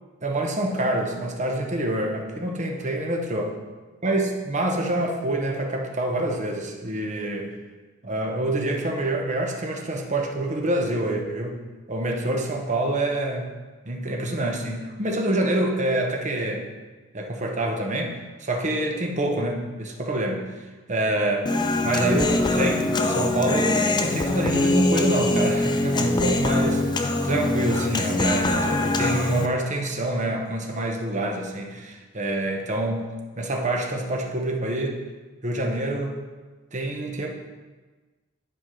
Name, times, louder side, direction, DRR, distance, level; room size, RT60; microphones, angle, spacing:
voice 1, 0.2-3.5 4.0-7.5 8.0-11.6 11.9-13.5 13.8-16.7 17.1-20.4 20.9-21.5 21.8-33.1 33.4-35.0 35.4-36.2 36.7-37.3, right 1 dB, 35° right, 1 dB, 1.0 m, -26 dB
Human voice, 21.5-29.5, left 2 dB, 20° left, 0.4 m, -23 dB
10.0 x 4.8 x 3.8 m, 1.3 s
head